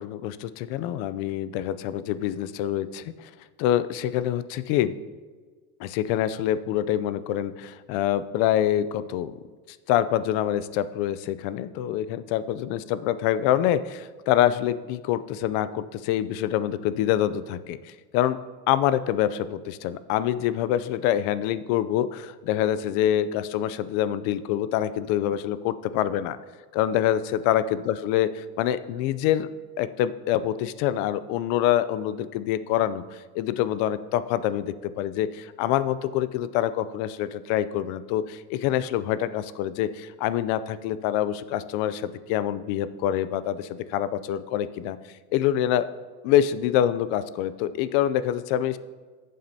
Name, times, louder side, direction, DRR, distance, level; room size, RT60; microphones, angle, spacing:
voice 1, 0.0-3.3 3.6-5.0 5.8-9.3 9.9-18.4 18.7-26.4 26.7-29.5 29.8-45.0 45.3-45.9 46.2-48.8, left 11 dB, 45° left, 15 dB, 0.4 m, -26 dB
14.0 x 7.5 x 2.7 m, 1.4 s
supercardioid pair, 155°, 41 cm